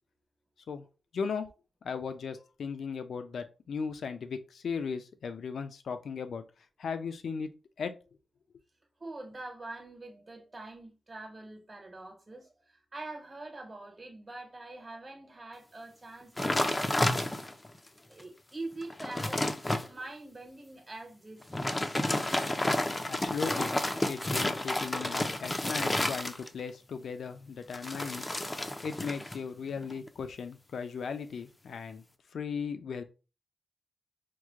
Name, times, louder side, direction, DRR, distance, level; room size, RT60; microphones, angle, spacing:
voice 1, 1.1-1.5 1.8-6.4 6.8-7.5 7.8-7.9 23.0-23.7 24.0-28.3 28.8-32.0 32.3-33.0, left 5 dB, 80° left, 0.5 m, -37 dB
voice 2, 9.0-17.3 18.1-19.5 19.9-21.7, right 2 dB, 30° right, 1.2 m, -44 dB
sound 1, 16.4-17.7 18.2-18.3 18.7-19.9 21.4-26.7 27.7-29.4 29.7-30.1, left 1 dB, 20° left, 0.5 m, -31 dB
4.7 x 2.2 x 3.6 m
wide cardioid pair, 100°, 0 cm